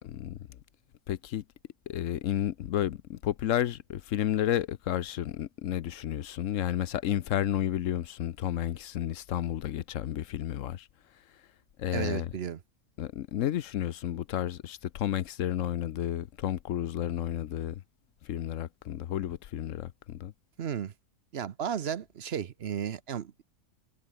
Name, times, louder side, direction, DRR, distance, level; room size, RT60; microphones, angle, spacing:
voice 1, 0.0-0.4 1.1-1.4 1.9-10.9 11.8-12.3 13.0-17.8 18.2-20.3, left 11 dB, 85° left, 1.1 m, -31 dB
voice 2, 11.9-12.6 20.6-20.9 21.3-23.4, right 8 dB, 60° right, 1.0 m, -34 dB
omnidirectional pair, 1.3 m